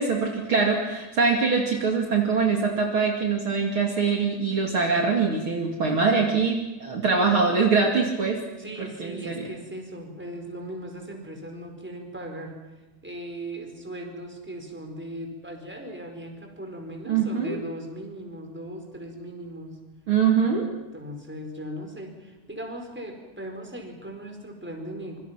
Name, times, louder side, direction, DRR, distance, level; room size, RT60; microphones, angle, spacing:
voice 1, 0.0-8.4 9.0-9.5 17.1-17.6 20.1-20.7, right 5 dB, 45° right, 1 dB, 3.2 m, -23 dB
voice 2, 8.6-12.6 13.0-19.7 20.3-20.5 20.9-25.2, right 1 dB, 5° right, 3 dB, 4.4 m, -38 dB
26.5 x 25.0 x 5.9 m, 1.1 s
omnidirectional pair, 3.4 m